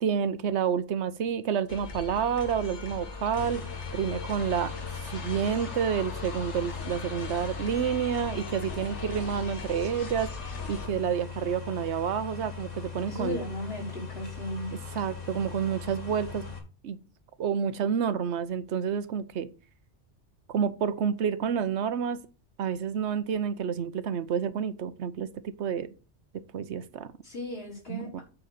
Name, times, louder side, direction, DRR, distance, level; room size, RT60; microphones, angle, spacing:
voice 1, 0.0-3.6 3.9-4.7 5.1-10.3 10.7-13.4 14.7-16.5 16.8-17.0 17.4-19.5 20.5-22.3 22.6-25.9 26.3-27.1 27.9-28.2, right 7 dB, 75° right, 1.0 m, -29 dB
sound 1, 1.7-10.9, left 4 dB, 85° left, 1.6 m, -39 dB
sound 2, 3.3-16.6, left 5 dB, 35° left, 1.9 m, -40 dB
voice 2, 13.1-14.7 27.2-28.2, left 1 dB, 60° left, 4.0 m, -36 dB
8.4 x 4.1 x 6.6 m
omnidirectional pair, 1.2 m